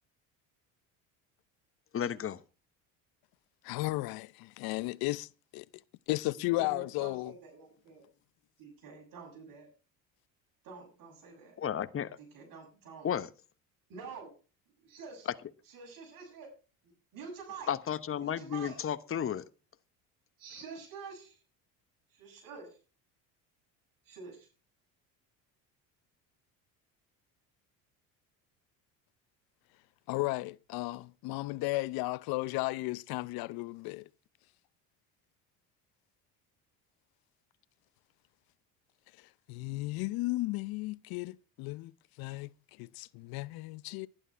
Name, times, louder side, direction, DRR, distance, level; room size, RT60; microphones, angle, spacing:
voice 1, 1.9-2.4 11.6-12.2 13.0-13.3 17.7-19.4, left 9 dB, 35° left, 1.1 m, -33 dB
voice 2, 3.6-5.3 5.5-5.6 6.1-7.3 30.1-34.0 39.5-41.9 42.2-44.1, left 20 dB, 65° left, 0.7 m, -34 dB
voice 3, 6.6-8.1 8.6-9.7 10.6-11.6 12.2-13.1 13.9-14.3 14.8-15.3 15.7-16.5 17.1-17.7 18.2-18.8 20.4-21.4 22.1-22.8 24.0-24.5, right 5 dB, 55° right, 7.3 m, -47 dB
11.5 x 11.0 x 4.5 m
supercardioid pair, 90°, 39 cm